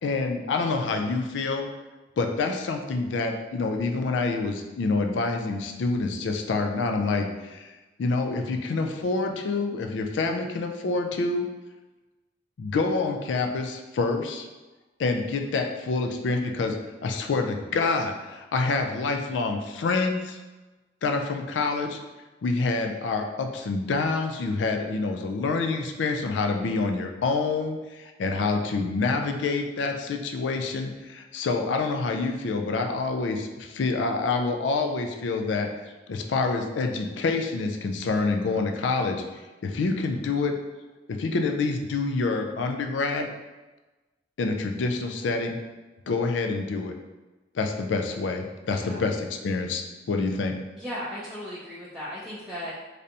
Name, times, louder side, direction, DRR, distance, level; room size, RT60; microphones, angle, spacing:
voice 1, 0.0-1.7 2.2-7.7 8.0-11.5 12.6-14.5 15.0-16.8 17.0-20.4 21.0-22.0 22.4-40.6 41.1-43.3 44.4-45.6 46.1-46.9 47.5-50.5, left 3 dB, 90° left, 4 dB, 0.4 m, -27 dB
voice 2, 48.6-49.0 50.8-52.8, equal, 5° right, -10 dB, 0.4 m, -36 dB
3.3 x 2.6 x 2.7 m, 1.2 s
head